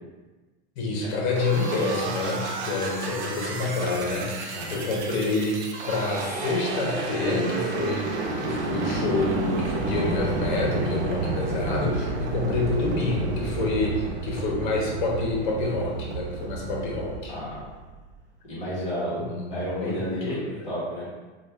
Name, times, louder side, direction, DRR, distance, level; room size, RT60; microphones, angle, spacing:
voice 1, 0.8-17.3 19.2-20.4, left 3 dB, 50° left, -2 dB, 0.8 m, -28 dB
sound 1, 1.3-18.0, right 3 dB, 85° right, 0.6 m, -31 dB
voice 2, 18.5-19.2 19.5-21.0, equal, 20° left, -9 dB, 1.1 m, -31 dB
2.5 x 2.2 x 3.2 m, 1.2 s
supercardioid pair, 160°, 33 cm